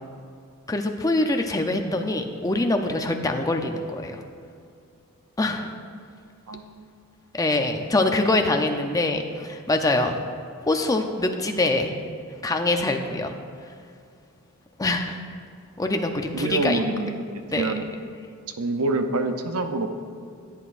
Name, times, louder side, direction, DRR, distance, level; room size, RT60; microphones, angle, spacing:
voice 1, 0.7-4.2 5.4-5.7 7.3-10.2 10.6-11.9 12.4-13.3 14.8-15.2 15.8-16.8 17.5-17.7, left 2 dB, 15° left, 4 dB, 0.6 m, -24 dB
voice 2, 6.5-6.9 16.3-17.2 17.5-17.9 18.6-19.9, right 3 dB, 80° right, 7 dB, 0.7 m, -26 dB
16.0 x 8.3 x 2.5 m, 2.3 s
head